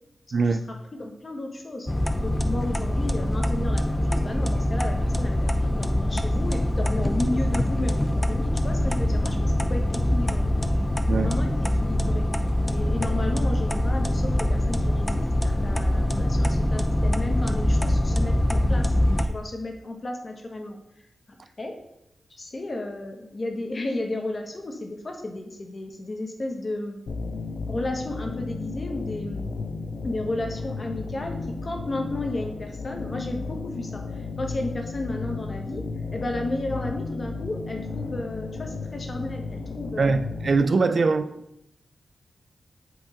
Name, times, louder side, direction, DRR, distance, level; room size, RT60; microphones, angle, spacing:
voice 1, 0.3-0.7 11.1-11.3 40.0-41.3, right 4 dB, 60° right, 0.4 m, -22 dB
voice 2, 1.0-1.9 2.2-10.5 11.1-12.2 12.7-18.9 19.3-20.8 21.6-21.7 22.3-27.0 27.7-29.4 30.0-34.0 34.4-35.8 36.1-40.1 40.7-41.1, left 2 dB, 45° left, 1.3 m, -33 dB
sound 1, 1.9-19.3, left 1 dB, 15° left, 0.6 m, -24 dB
sound 2, 27.1-40.6, left 4 dB, 70° left, 0.6 m, -34 dB
8.0 x 3.6 x 4.9 m
cardioid pair, 75°, 0 cm